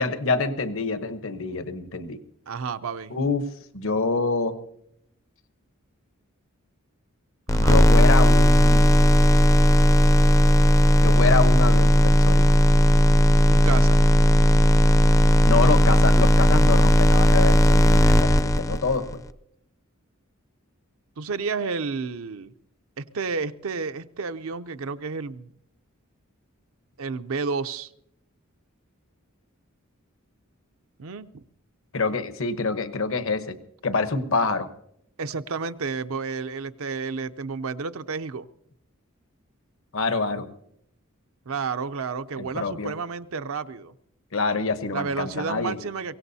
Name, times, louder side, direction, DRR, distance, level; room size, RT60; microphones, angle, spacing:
voice 1, 0.0-2.2 3.1-3.5 3.7-4.6 7.6-9.0 11.0-12.5 15.4-19.2 31.9-33.6 33.8-34.7 39.9-40.5 42.4-42.9 44.3-45.8, left 3 dB, 70° left, 1.1 m, -26 dB
voice 2, 2.5-3.1 7.5-7.9 13.5-14.0 21.2-22.5 23.1-25.5 27.0-27.9 31.0-31.4 35.2-38.5 41.5-43.9 44.9-46.2, right 5 dB, 75° right, 0.6 m, -31 dB
sound 1, 7.5-19.1, equal, 15° left, 0.5 m, -16 dB
23.5 x 17.5 x 2.8 m
head